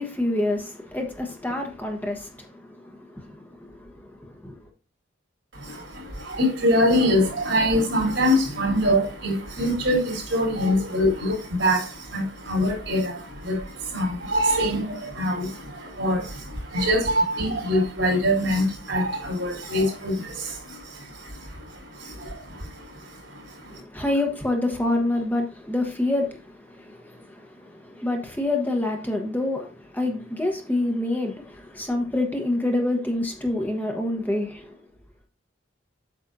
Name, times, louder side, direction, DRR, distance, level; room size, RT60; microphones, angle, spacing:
voice 1, 0.0-4.6 23.7-34.7, left 2 dB, 10° left, 1.1 m, -27 dB
voice 2, 5.5-23.8, equal, 75° right, 3.8 m, -24 dB
8.3 x 6.2 x 2.7 m
head